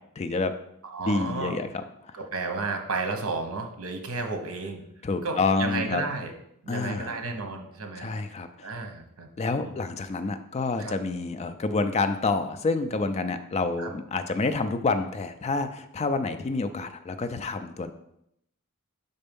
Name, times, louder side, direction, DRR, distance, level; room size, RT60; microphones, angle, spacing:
voice 1, 0.2-0.5 1.1-2.1 5.0-6.0 6.7-7.2 8.0-8.5 9.4-17.9, left 3 dB, 30° left, 9 dB, 0.4 m, -28 dB
voice 2, 0.9-1.6 2.1-4.8 5.2-6.3 6.6-8.1 8.6-9.3 9.6-9.8 10.8-11.0 13.8-13.9, right 3 dB, 70° right, 4 dB, 1.0 m, -32 dB
5.4 x 4.3 x 5.3 m, 0.76 s
head